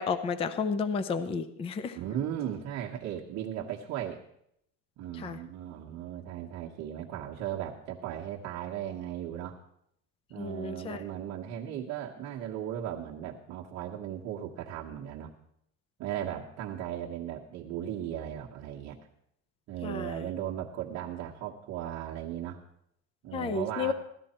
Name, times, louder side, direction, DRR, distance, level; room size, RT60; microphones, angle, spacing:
voice 1, 0.0-2.0 5.2-5.4 10.4-11.0 19.8-20.3 23.3-23.9, left 5 dB, 15° left, 12 dB, 0.5 m, -32 dB
voice 2, 1.9-4.2 5.0-9.6 10.3-15.3 16.0-19.0 19.7-22.6 23.2-23.9, right 10 dB, 45° right, -3 dB, 1.4 m, -37 dB
17.0 x 13.0 x 4.4 m, 0.75 s
cardioid pair, 160°, 37 cm